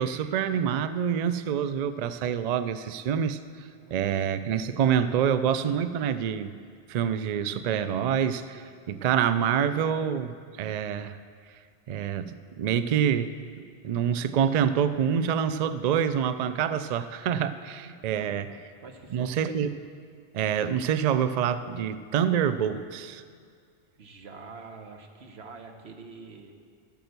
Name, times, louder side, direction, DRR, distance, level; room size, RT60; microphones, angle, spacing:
voice 1, 0.0-6.6 6.9-11.2 11.9-13.3 13.8-18.5 19.1-19.8 20.3-23.2, right 8 dB, 55° right, 13 dB, 0.5 m, -26 dB
voice 2, 3.8-4.6 17.8-19.3 24.0-26.6, right 4 dB, 90° right, 4 dB, 1.3 m, -47 dB
11.5 x 8.8 x 6.7 m, 2.1 s
omnidirectional pair, 1.0 m